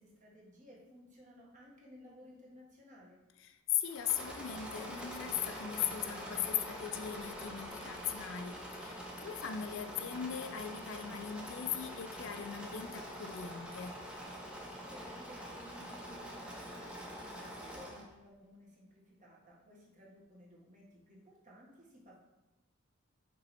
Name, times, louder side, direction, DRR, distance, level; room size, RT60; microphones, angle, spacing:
voice 1, 0.0-3.2 14.8-22.2, equal, 35° right, -4 dB, 1.6 m, -57 dB
voice 2, 3.4-14.0, left 9 dB, 60° left, 9 dB, 0.4 m, -39 dB
Engine / Mechanisms, 3.9-18.1, equal, 5° right, 0.8 m, -45 dB
5.2 x 4.6 x 4.2 m, 0.98 s
head